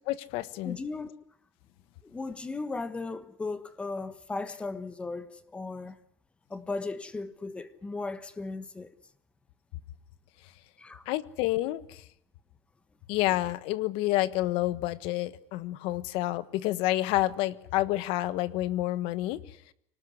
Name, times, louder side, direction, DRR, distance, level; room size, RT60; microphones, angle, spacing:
voice 1, 0.1-0.8 11.1-12.0 13.1-19.6, left 16 dB, 55° left, 1.3 m, -29 dB
voice 2, 0.6-1.1 2.0-6.0 6.5-8.9 10.8-11.1, left 3 dB, 10° left, 1.4 m, -36 dB
25.5 x 19.0 x 9.9 m
cardioid pair, 180°, 11 cm